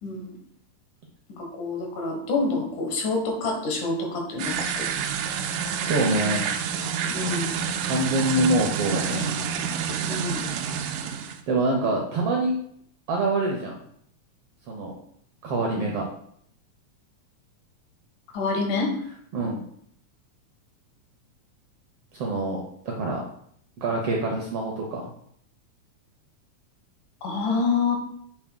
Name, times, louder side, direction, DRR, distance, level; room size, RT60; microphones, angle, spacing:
voice 1, 0.0-0.4 1.4-4.9 7.1-7.6 10.1-10.5 15.8-15.9 18.3-18.9 27.2-28.0, left 3 dB, 80° left, 2 dB, 2.7 m, -27 dB
sound 1, 4.4-11.4, right 7 dB, 85° right, 2.1 m, -28 dB
voice 2, 5.8-6.4 7.8-9.3 11.5-12.5 13.1-13.7 14.7-14.9 15.4-16.0 19.3-19.6 22.1-23.2 23.8-25.0, right 2 dB, 70° right, -1 dB, 1.5 m, -25 dB
7.4 x 6.0 x 2.2 m, 0.68 s
omnidirectional pair, 3.5 m